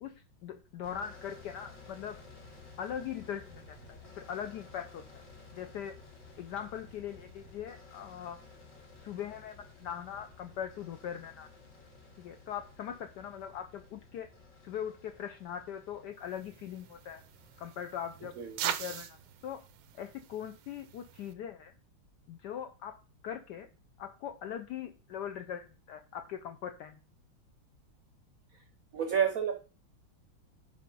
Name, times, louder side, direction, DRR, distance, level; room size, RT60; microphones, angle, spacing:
voice 1, 0.4-2.2 2.8-5.0 5.5-5.9 6.4-8.4 9.0-11.5 12.2-14.3 14.6-17.2 17.6-18.3 18.6-19.2 19.4-19.6 20.0-21.7 22.3-23.0 23.2-23.7 24.0-27.0, left 9 dB, 75° left, 7 dB, 0.9 m, -41 dB
sound 1, 0.8-19.5, left 3 dB, 55° left, 2.8 m, -55 dB
sound 2, 16.2-21.3, right 11 dB, 85° right, 1.5 m, -42 dB
voice 2, 28.9-29.7, right 8 dB, 65° right, 6 dB, 0.9 m, -30 dB
5.7 x 4.9 x 5.2 m, 0.35 s
omnidirectional pair, 2.3 m